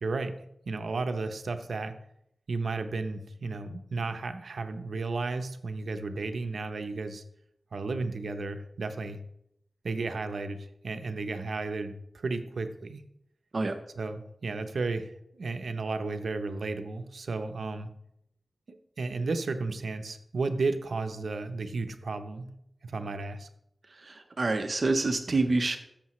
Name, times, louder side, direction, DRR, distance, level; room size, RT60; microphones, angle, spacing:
voice 1, 0.0-0.4 0.7-1.9 2.5-7.2 7.7-9.2 9.8-13.0 14.0-17.9 19.0-22.5 22.8-23.5, right 3 dB, 85° right, 8 dB, 0.8 m, -33 dB
voice 2, 24.0-25.8, right 3 dB, 55° right, 7 dB, 0.9 m, -27 dB
13.5 x 6.6 x 3.1 m, 0.77 s
wide cardioid pair, 85°, 0 cm